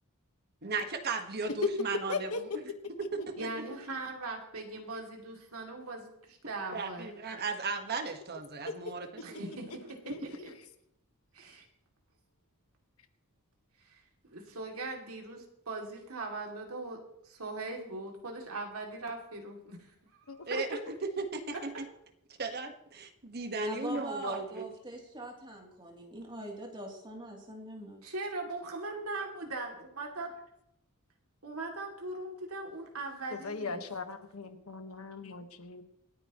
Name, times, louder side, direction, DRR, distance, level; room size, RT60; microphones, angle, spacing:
voice 1, 0.6-2.6 3.0-3.3 6.7-9.5 20.5-20.8 21.2-21.9 22.4-24.7, right 4 dB, 45° right, 6 dB, 1.5 m, -36 dB
voice 2, 3.4-7.1 9.2-9.9 10.4-10.5 11.3-11.7 13.8-14.0 14.2-17.0 17.2-19.9 20.2-20.5 28.0-30.3 31.4-33.8, right 2 dB, 70° right, 1 dB, 2.7 m, -40 dB
voice 3, 10.1-10.5 20.3-20.4 33.3-35.8, left 4 dB, 70° left, 7 dB, 1.4 m, -39 dB
voice 4, 23.6-28.1, right 1 dB, 20° right, 0 dB, 3.0 m, -43 dB
27.5 x 9.4 x 3.1 m, 0.80 s
head